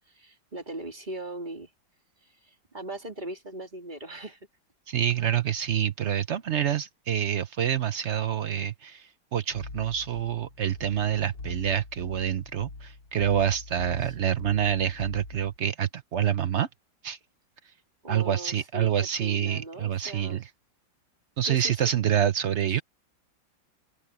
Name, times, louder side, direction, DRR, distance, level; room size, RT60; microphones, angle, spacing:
voice 1, 0.1-1.7 2.2-4.4 14.0-14.1 18.0-20.4 21.4-21.8 22.7-22.8, right 2 dB, 25° right, 3.0 m, -39 dB
voice 2, 4.9-16.7 17.0-17.2 18.1-20.5 21.4-22.8, right 9 dB, 75° right, 0.6 m, -27 dB
sound 1, 9.5-15.6, left 3 dB, 65° left, 4.0 m, -43 dB
open air
omnidirectional pair, 2.1 m